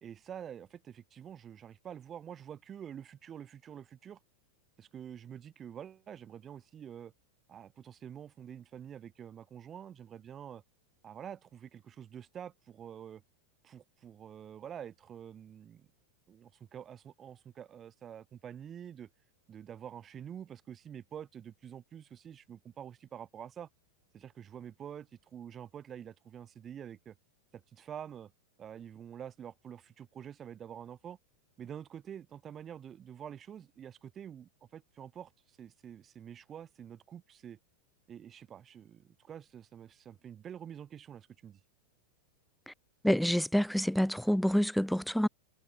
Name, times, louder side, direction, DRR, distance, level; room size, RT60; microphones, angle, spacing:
voice 1, 0.0-4.2 4.8-7.1 7.5-10.6 11.0-13.2 13.6-15.9 16.3-19.1 19.5-23.7 24.1-27.1 27.5-28.3 28.6-31.2 31.6-37.6 38.1-41.6, right 9 dB, 25° right, 1.7 m, -47 dB
voice 2, 43.0-45.3, equal, ahead, 0.6 m, -27 dB
figure-of-eight pair, 90°, 0 cm